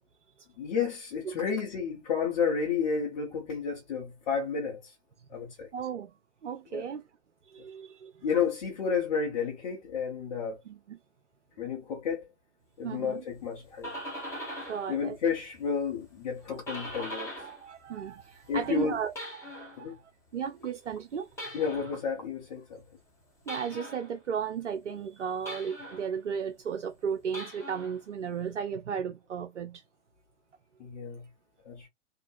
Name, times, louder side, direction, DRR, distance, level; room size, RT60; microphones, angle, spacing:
voice 1, 0.6-4.9 5.3-5.7 6.7-6.8 8.2-10.6 11.6-12.2 12.8-13.9 14.9-17.3 18.5-19.0 19.8-19.9 21.5-22.8 30.8-31.3 31.6-31.9, left 6 dB, 40° left, 1.0 m, -31 dB
voice 2, 5.7-6.1 6.4-7.1 7.5-8.3 10.7-11.0 12.8-13.2 14.7-15.2 16.5-16.6 17.0-21.7 23.5-29.8, right 7 dB, 80° right, 0.5 m, -35 dB
sound 1, 13.5-14.9 15.3-17.7 18.0-19.8 21.3-22.0 23.5-24.1 25.5-26.1 27.2-28.0, equal, 5° left, 1.2 m, -41 dB
2.8 x 2.5 x 2.5 m
figure-of-eight pair, 110°, 36 cm